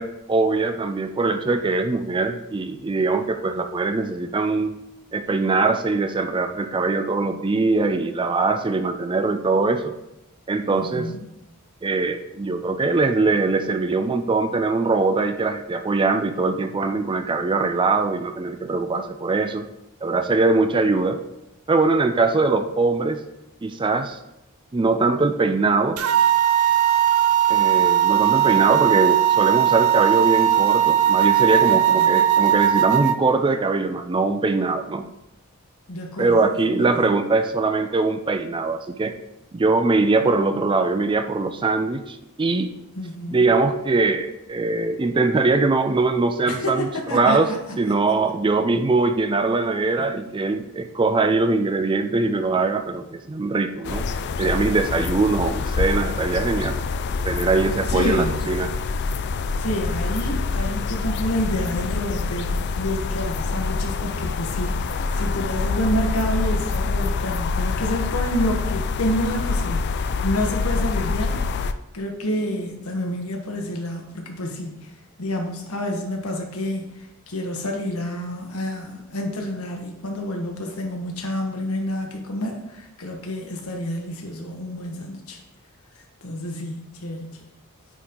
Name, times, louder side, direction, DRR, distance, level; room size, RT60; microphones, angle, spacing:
voice 1, 0.0-4.7 5.1-9.9 10.5-11.1 11.8-19.7 20.0-21.2 21.7-23.2 23.6-24.2 24.7-26.0 27.5-35.1 36.2-39.2 39.5-42.7 43.3-47.5 47.8-54.1 54.4-56.8 57.2-58.7, right 3 dB, 20° right, 8 dB, 0.4 m, -22 dB
voice 2, 10.7-11.3 31.7-32.2 35.9-37.1 43.0-43.5 46.5-47.8 57.9-58.5 59.6-71.4 71.9-74.9 75.2-85.4 86.2-87.5, equal, 75° left, 2 dB, 1.4 m, -29 dB
sound 1, 26.0-33.2, right 11 dB, 90° right, 0.6 m, -18 dB
sound 2, 53.8-71.7, left 4 dB, 50° left, 0.4 m, -26 dB
9.2 x 4.3 x 3.8 m, 0.89 s
head